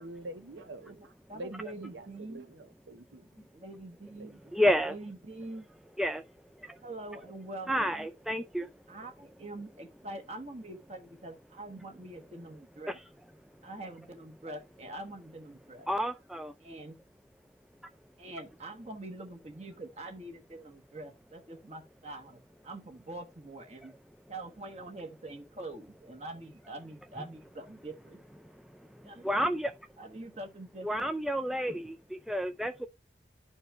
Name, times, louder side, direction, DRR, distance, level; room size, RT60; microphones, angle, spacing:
voice 1, 0.0-3.4 4.2-4.5, right 2 dB, 85° right, 0.7 m, -46 dB
voice 2, 0.6-2.5 3.5-4.3 4.9-5.7 6.8-8.1 8.9-13.0 13.6-15.9 16.6-17.0 18.2-23.9 24.3-28.2 29.0-29.3 30.0-31.1, right 2 dB, 35° right, 1.4 m, -44 dB
voice 3, 4.5-4.9 6.0-6.2 6.6-6.8 7.7-8.7 12.9-13.0 15.9-16.5 28.4-29.7 30.8-32.9, equal, ahead, 0.3 m, -30 dB
11.0 x 4.5 x 3.3 m
head